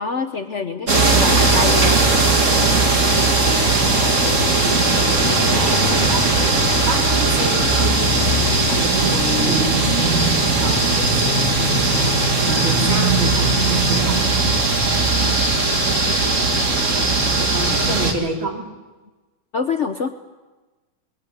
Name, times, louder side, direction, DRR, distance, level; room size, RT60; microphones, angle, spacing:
voice 1, 0.0-2.1 19.5-20.1, left 5 dB, 60° left, 7 dB, 0.7 m, -25 dB
sound 1, 0.9-18.1, right 3 dB, 35° right, 2.4 m, -18 dB
voice 2, 4.0-4.8 5.3-7.9 8.4-12.1 12.5-14.2 17.4-18.6, right 3 dB, 65° right, 2 dB, 3.6 m, -30 dB
20.5 x 15.5 x 9.7 m, 1.2 s
omnidirectional pair, 2.3 m